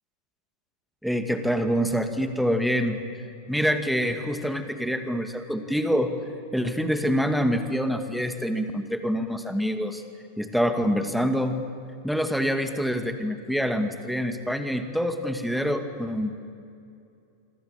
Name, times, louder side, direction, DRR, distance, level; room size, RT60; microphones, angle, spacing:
voice 1, 1.0-3.0 3.5-6.1 6.5-10.0 10.4-11.6 12.0-16.5, equal, ahead, 7 dB, 2.2 m, -26 dB
26.5 x 25.0 x 8.8 m, 2.6 s
figure-of-eight pair, 90°, 0 cm